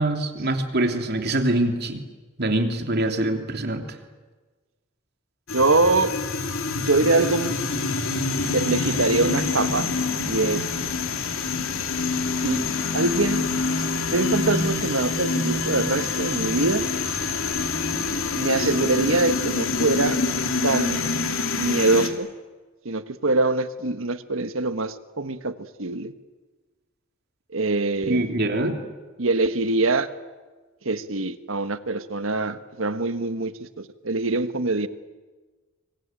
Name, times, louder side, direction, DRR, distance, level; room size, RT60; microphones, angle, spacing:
voice 1, 0.0-2.0 2.4-4.0 28.1-28.8, right 1 dB, 55° right, 3.0 m, -24 dB
sound 1, 5.5-22.1, left 4 dB, 85° left, 2.8 m, -26 dB
voice 2, 5.5-6.1 6.8-7.5 8.5-9.9 10.3-10.6 12.4-12.6 12.9-13.5 13.8-13.9 14.1-16.8 18.4-20.2 20.6-21.0 21.6-22.3 22.8-26.1 27.5-28.3 29.2-30.1 30.8-33.5 33.8-34.9, right 2 dB, 80° right, 1.5 m, -23 dB
25.5 x 24.0 x 9.1 m
head